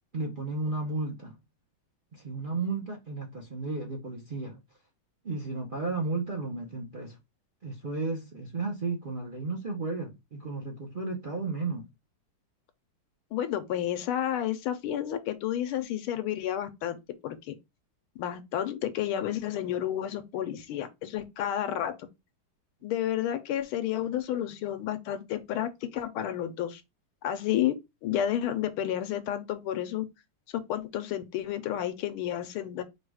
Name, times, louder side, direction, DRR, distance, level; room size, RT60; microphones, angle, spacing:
voice 1, 0.1-1.3 2.1-4.6 5.2-7.2 7.6-11.9, right 3 dB, 70° right, 0.4 m, -33 dB
voice 2, 13.3-17.5 18.2-21.9 22.8-26.8 27.2-27.7 28.0-30.0 30.5-32.8, left 11 dB, 80° left, 1.5 m, -31 dB
4.7 x 2.3 x 4.7 m
omnidirectional pair, 2.3 m